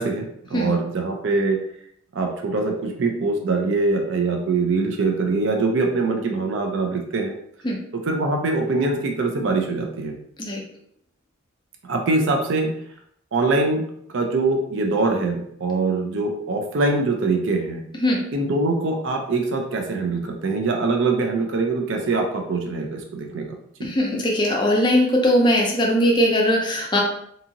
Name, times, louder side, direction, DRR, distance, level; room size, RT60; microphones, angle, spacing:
voice 1, 0.0-1.6 2.1-7.3 8.1-10.1 11.9-12.7 13.3-13.8 14.1-17.8 18.3-23.5, right 3 dB, 55° right, 3 dB, 0.4 m, -23 dB
voice 2, 23.8-27.0, equal, 20° left, -1 dB, 0.5 m, -20 dB
2.7 x 2.5 x 2.7 m, 0.69 s
head